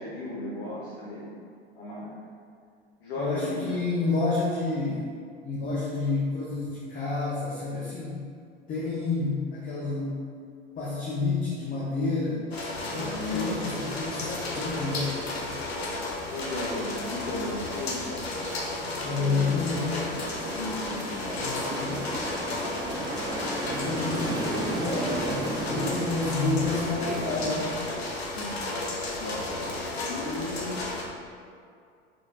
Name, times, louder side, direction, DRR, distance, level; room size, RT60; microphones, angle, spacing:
voice 1, 0.0-1.4 1.7-2.2 3.0-3.8 12.9-13.6 16.3-18.4 19.1-19.5 20.4-21.4 28.3-28.6 29.1-30.8, left 2 dB, 60° left, -7 dB, 1.0 m, -35 dB
voice 2, 3.2-5.1 5.4-8.2 8.7-10.2 10.8-12.4 12.9-15.6 18.9-20.1 21.3-22.1 23.7-27.8, left 3 dB, 25° left, -5 dB, 0.7 m, -29 dB
sound 1, 12.5-31.0, left 2 dB, 80° left, 0.7 m, -33 dB
sound 2, 19.7-27.8, right 2 dB, 15° right, 0.4 m, -35 dB
4.6 x 4.1 x 2.5 m, 2.2 s
figure-of-eight pair, 70°, 31 cm